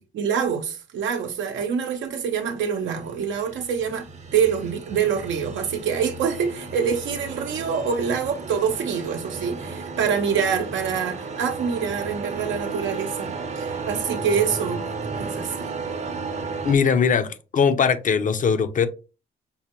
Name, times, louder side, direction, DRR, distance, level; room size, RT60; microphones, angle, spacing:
voice 1, 0.0-15.7, right 7 dB, 75° right, 0.7 m, -26 dB
sound 1, 2.6-16.7, right 4 dB, 35° right, 0.7 m, -34 dB
voice 2, 16.6-18.9, left 6 dB, 40° left, 0.6 m, -20 dB
5.4 x 2.1 x 3.0 m
cardioid pair, 90°, 20 cm